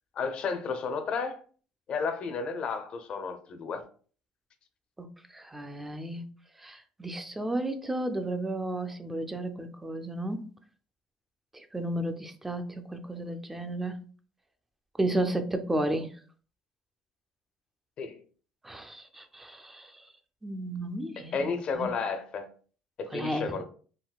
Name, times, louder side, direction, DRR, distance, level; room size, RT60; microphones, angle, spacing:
voice 1, 0.1-1.4 1.9-3.8 18.0-18.2 21.2-22.5 23.0-23.6, left 5 dB, 50° left, 0.5 m, -32 dB
voice 2, 5.3-6.2 6.6-10.4 11.5-14.0 15.0-16.1 18.6-20.0 20.4-21.9 23.1-23.6, right 1 dB, 10° right, 0.4 m, -33 dB
3.7 x 2.2 x 2.3 m
cardioid pair, 100°, 2 cm